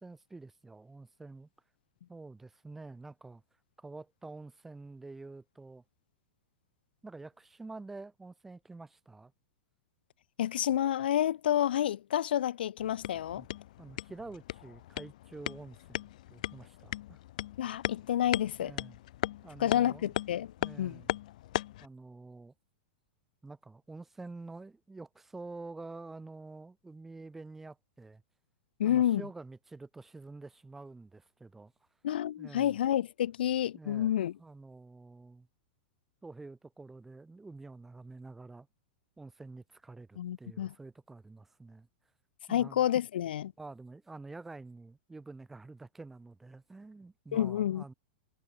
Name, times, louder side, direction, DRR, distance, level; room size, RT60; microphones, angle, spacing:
voice 1, 0.0-1.5 2.1-3.4 3.8-5.8 7.0-9.3 13.3-13.5 13.8-16.0 16.3-17.2 18.6-19.0 19.4-20.2 20.6-21.2 21.8-22.5 23.4-28.2 28.8-31.7 32.4-32.8 33.7-34.1 34.4-35.5 36.2-38.7 39.2-41.9 42.5-42.8 43.6-47.9, right 3 dB, 5° right, 4.3 m, -48 dB
voice 2, 10.4-13.4 17.6-18.7 19.6-20.5 20.8-21.0 28.8-29.2 32.0-34.3 40.2-40.7 42.5-43.5 47.3-47.9, left 11 dB, 75° left, 1.2 m, -29 dB
sound 1, 12.8-21.9, left 15 dB, 50° left, 2.8 m, -38 dB
supercardioid pair, 180°, 5 cm